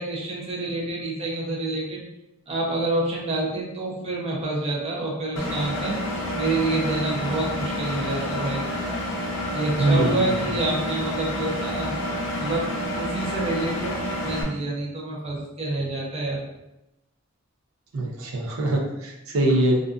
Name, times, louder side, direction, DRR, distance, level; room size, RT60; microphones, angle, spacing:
voice 1, 0.0-2.0 2.5-6.0 6.3-8.6 9.5-11.9 12.4-12.7 13.0-16.4, right 2 dB, 30° right, -3 dB, 0.5 m, -27 dB
Engine, 5.4-14.4, left 1 dB, 65° left, 0.6 m, -29 dB
voice 2, 9.8-10.2 17.9-19.8, right 1 dB, 85° right, 0 dB, 0.5 m, -22 dB
2.4 x 2.2 x 2.4 m, 0.90 s
head